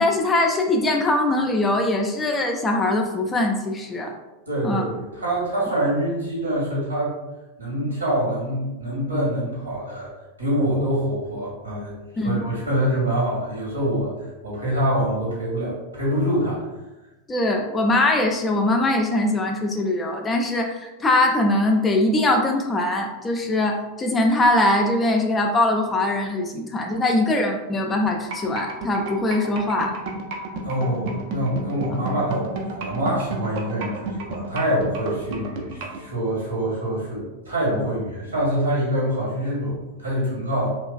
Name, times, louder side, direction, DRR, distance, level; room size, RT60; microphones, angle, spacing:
voice 1, 0.0-4.1 4.6-4.8 12.2-12.4 17.3-29.9, left 2 dB, 15° left, 2 dB, 0.3 m, -22 dB
voice 2, 4.5-7.1 7.6-10.1 10.4-11.9 12.2-14.1 14.4-16.7 30.6-40.7, right 1 dB, 75° right, -6 dB, 1.1 m, -25 dB
sound 1, 28.1-36.0, right 4 dB, 50° right, 0.4 m, -31 dB
3.0 x 2.3 x 2.3 m, 1.1 s
figure-of-eight pair, 90°, 0 cm